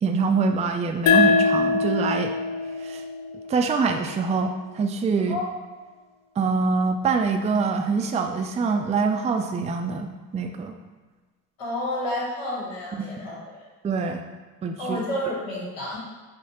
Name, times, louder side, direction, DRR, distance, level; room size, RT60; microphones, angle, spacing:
voice 1, 0.0-2.3 2.8-3.0 3.5-5.4 6.4-10.7 12.9-13.1 13.8-14.3 14.6-15.0, right 4 dB, 20° right, 5 dB, 0.3 m, -24 dB
sound 1, 1.1-4.3, left 4 dB, 60° left, 0.5 m, -23 dB
voice 2, 11.6-13.6 14.8-16.0, left 1 dB, 90° left, -7 dB, 1.3 m, -30 dB
4.9 x 2.1 x 2.8 m, 1.3 s
hypercardioid pair, 50°, 39 cm